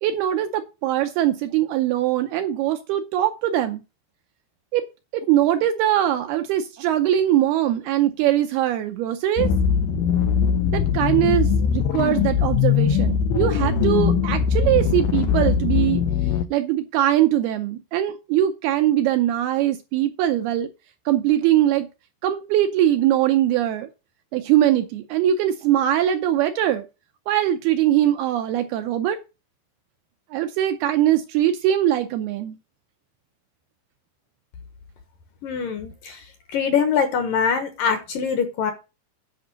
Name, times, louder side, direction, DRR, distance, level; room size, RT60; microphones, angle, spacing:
voice 1, 0.0-3.8 4.7-4.9 5.1-9.5 10.7-16.0 16.5-20.7 21.1-21.9 22.2-23.9 24.3-26.8 27.3-29.2 30.3-32.5, right 12 dB, 80° right, 2.4 m, -21 dB
sound 1, 9.4-16.5, left 7 dB, 90° left, 3.2 m, -21 dB
voice 2, 35.4-38.7, left 6 dB, 65° left, 2.3 m, -23 dB
10.5 x 5.4 x 6.2 m
omnidirectional pair, 5.1 m